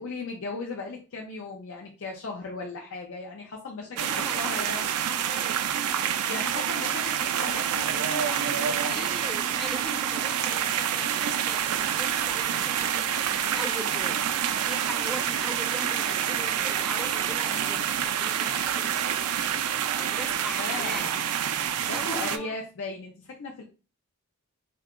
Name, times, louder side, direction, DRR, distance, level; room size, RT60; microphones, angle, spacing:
voice 1, 0.0-4.8 6.3-9.3 20.6-21.2 21.8-23.6, left 3 dB, 60° left, 0 dB, 0.5 m, -37 dB
voice 2, 3.9-6.8 8.8-14.2 14.5-19.2 20.0-21.2 21.9-22.5, equal, ahead, 1 dB, 0.4 m, -40 dB
sound 1, 4.0-22.4, right 9 dB, 75° right, 0.3 m, -27 dB
2.8 x 2.2 x 3.6 m, 0.33 s
head